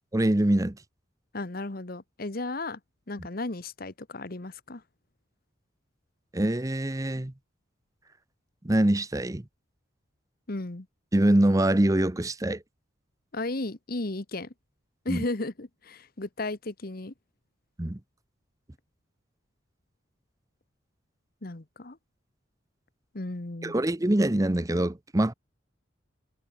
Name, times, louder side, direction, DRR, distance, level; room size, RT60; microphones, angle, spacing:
voice 1, 0.1-0.8 6.3-7.3 8.6-9.4 11.1-12.6 15.1-15.2 17.8-18.0 23.6-25.3, right 1 dB, 15° right, 0.7 m, -24 dB
voice 2, 1.3-2.8 3.1-4.8 10.5-10.9 13.3-14.5 15.0-17.1 21.4-22.0 23.1-23.8, left 2 dB, 50° left, 1.2 m, -34 dB
head